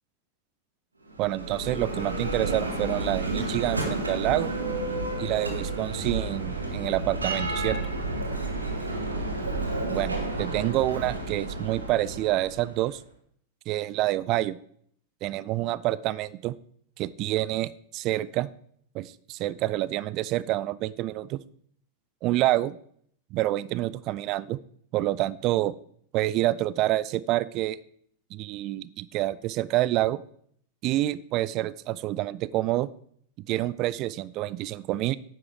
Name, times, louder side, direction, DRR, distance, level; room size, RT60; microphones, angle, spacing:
Bell, 1.1-12.9, right 2 dB, 80° right, 1.3 m, -31 dB
voice 1, 1.2-4.5 5.2-7.8 9.9-13.0 13.7-14.6 15.2-16.5 17.0-18.5 18.9-21.4 22.2-22.8 23.3-24.6 24.9-25.7 26.1-27.8 28.3-30.2 30.8-32.9 33.5-35.2, right 15 dB, 40° right, 18 dB, 0.4 m, -27 dB
9.7 x 7.6 x 3.5 m, 0.63 s
figure-of-eight pair, 90°, 0 cm